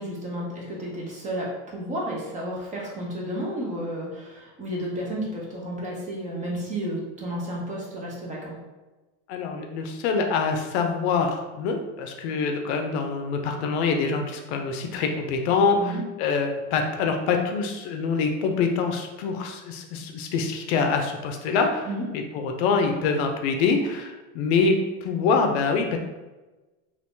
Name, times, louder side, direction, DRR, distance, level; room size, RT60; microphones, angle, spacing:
voice 1, 0.0-8.5 15.8-16.0 21.8-22.0, right 1 dB, 20° right, -4 dB, 0.7 m, -32 dB
voice 2, 9.3-26.0, left 4 dB, 65° left, 4 dB, 0.6 m, -25 dB
2.6 x 2.6 x 3.5 m, 1.2 s
supercardioid pair, 155°, 36 cm